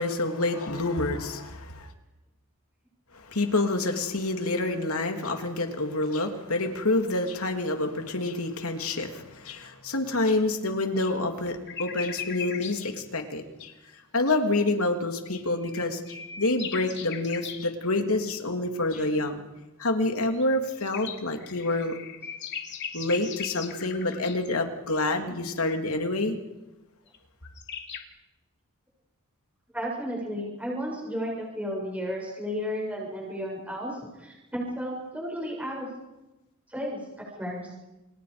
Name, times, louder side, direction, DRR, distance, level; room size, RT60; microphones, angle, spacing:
voice 1, 0.0-1.9 3.1-13.7 14.1-19.4 19.8-22.0 22.9-26.4, left 2 dB, 75° left, 4 dB, 3.1 m, -27 dB
sound 1, 11.4-12.8 15.3-17.6 20.3-24.5 27.1-27.2 27.4-28.0, left 7 dB, 55° left, 2.9 m, -38 dB
voice 2, 29.7-35.9 36.7-37.0 37.4-37.7, equal, 5° right, -3 dB, 7.3 m, -33 dB
29.5 x 29.0 x 5.2 m, 1.0 s
head